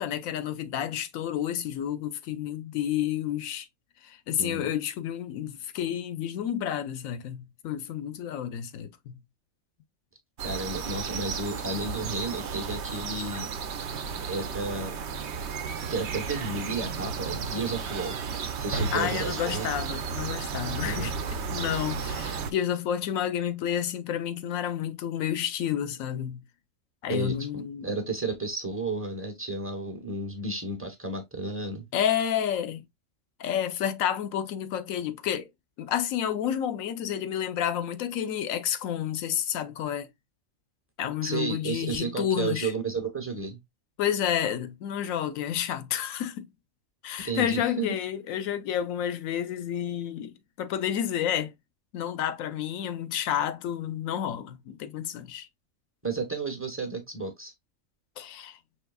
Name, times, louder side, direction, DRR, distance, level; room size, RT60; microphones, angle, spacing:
voice 1, 0.0-3.7 4.0-9.2 18.9-21.1 21.5-26.4 27.0-27.9 31.9-32.8 33.4-35.5 35.8-40.1 41.0-42.7 44.0-46.5 47.0-51.5 51.9-55.5 58.2-58.6, left 10 dB, 90° left, 1.0 m, -30 dB
voice 2, 10.4-13.5 14.3-15.0 15.9-18.2 18.6-19.7 20.8-21.1 27.1-31.9 41.2-43.6 47.2-48.0 56.0-57.5, right 3 dB, 10° right, 0.7 m, -32 dB
sound 1, 10.4-22.5, right 5 dB, 65° right, 0.8 m, -33 dB
5.5 x 3.0 x 2.3 m
omnidirectional pair, 1.4 m